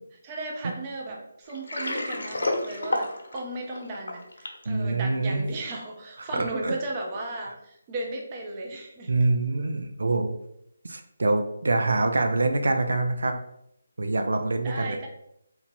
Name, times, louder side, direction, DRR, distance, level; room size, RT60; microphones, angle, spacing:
voice 1, 0.2-9.1 14.6-15.1, right 2 dB, 20° right, -1 dB, 0.5 m, -35 dB
Water, 1.5-4.7, left 2 dB, 80° left, 1.0 m, -30 dB
voice 2, 4.7-5.4 6.2-6.7 9.1-10.4 10.8-13.3 14.0-15.0, right 2 dB, 80° right, 5 dB, 0.5 m, -25 dB
2.8 x 2.7 x 4.3 m, 0.77 s
hypercardioid pair, 170°, 0 cm